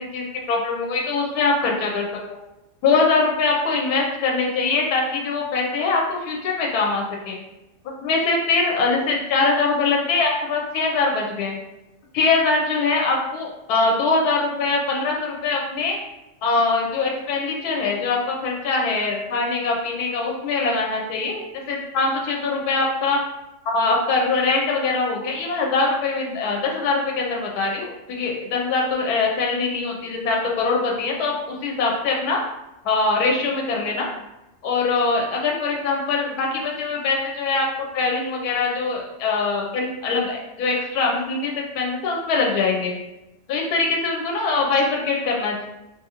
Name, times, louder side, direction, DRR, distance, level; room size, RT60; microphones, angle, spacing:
voice 1, 0.1-2.1 2.8-7.4 8.0-11.5 12.1-16.0 16.4-23.2 23.6-32.4 32.8-34.1 34.6-43.0 43.5-45.7, left 3 dB, 90° left, 0 dB, 1.1 m, -22 dB
2.5 x 2.5 x 2.8 m, 0.94 s
omnidirectional pair, 1.6 m